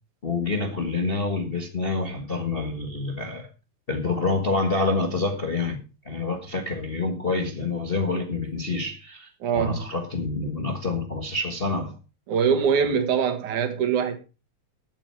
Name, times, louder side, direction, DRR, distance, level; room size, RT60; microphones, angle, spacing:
voice 1, 0.2-3.5 3.9-5.8 6.0-9.3 9.6-11.9 12.7-12.9, left 3 dB, 30° left, 1.1 m, -27 dB
voice 2, 9.4-9.8 12.3-14.2, right 7 dB, 80° right, 3.2 m, -23 dB
14.0 x 8.9 x 4.7 m
omnidirectional pair, 3.4 m